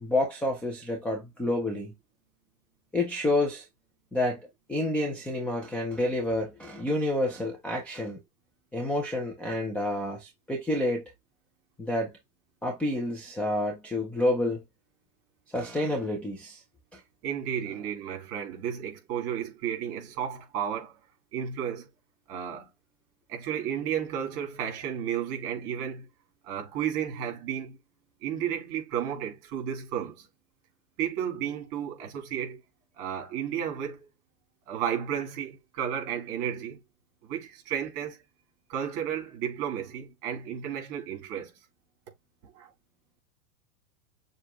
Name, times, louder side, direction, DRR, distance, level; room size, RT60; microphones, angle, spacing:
voice 1, 0.0-1.9 2.9-3.7 4.1-8.2 8.7-11.0 11.8-12.1 12.6-14.6 15.5-16.6 16.9-17.0, left 1 dB, 5° left, 0.4 m, -29 dB
voice 2, 17.2-21.0 21.3-21.9 22.3-22.7 23.3-26.1 26.4-27.8 28.2-30.3 31.0-32.6 33.0-34.1 34.7-36.8 37.2-38.2 38.7-41.5 42.4-42.7, right 9 dB, 45° right, 3.5 m, -33 dB
6.8 x 2.3 x 3.0 m
supercardioid pair, 145°, 47 cm